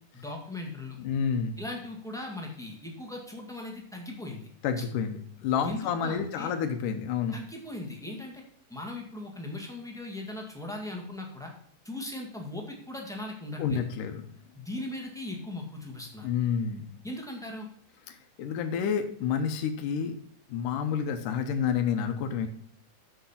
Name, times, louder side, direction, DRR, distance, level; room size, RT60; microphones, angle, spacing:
voice 1, 0.1-1.0 1.6-4.5 4.8-4.9 5.6-6.5 7.3-8.4 8.7-11.5 11.8-13.8 14.5-16.3 17.0-17.7, left 2 dB, ahead, 0 dB, 0.7 m, -39 dB
voice 2, 1.0-1.6 4.6-7.4 13.6-14.3 16.2-16.9 18.4-20.1 20.5-22.5, left 7 dB, 80° left, 6 dB, 2.4 m, -29 dB
8.1 x 7.3 x 5.7 m, 0.62 s
omnidirectional pair, 3.7 m